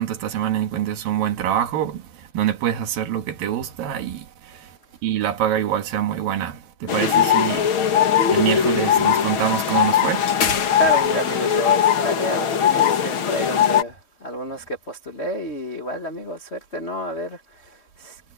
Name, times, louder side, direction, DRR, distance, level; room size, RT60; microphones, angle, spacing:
voice 1, 0.0-8.0 8.3-10.6, right 11 dB, 65° right, 3.5 m, -25 dB
sound 1, 6.9-13.8, left 8 dB, 55° left, 1.4 m, -20 dB
voice 2, 10.7-18.2, equal, 90° left, 0.5 m, -29 dB
omnidirectional pair, 4.6 m